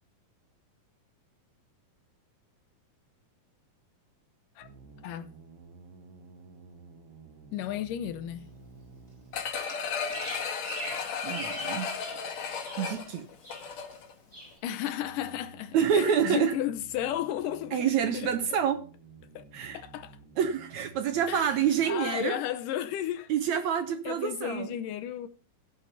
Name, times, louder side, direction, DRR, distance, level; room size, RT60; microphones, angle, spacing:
sound 1, 4.6-9.6 14.8-21.9, right 4 dB, 50° right, 1.5 m, -52 dB
voice 1, 7.5-8.5 14.6-18.4 19.4-19.5 19.7-20.2 21.3-23.6 24.1-25.3, left 11 dB, 75° left, 2.2 m, -34 dB
sound 2, 9.3-14.1 14.5-14.6, left 6 dB, 55° left, 2.4 m, -34 dB
Bird vocalization bird call bird song, 9.7-12.2 12.5-13.1 13.4-14.0 14.3-14.6, right 1 dB, 20° right, 3.5 m, -41 dB
voice 2, 11.2-11.9 12.8-13.3 15.7-16.5 17.7-18.8 19.5-19.8 20.4-22.4 23.3-24.7, right 8 dB, 70° right, 1.9 m, -27 dB
15.5 x 6.5 x 5.6 m
omnidirectional pair, 4.1 m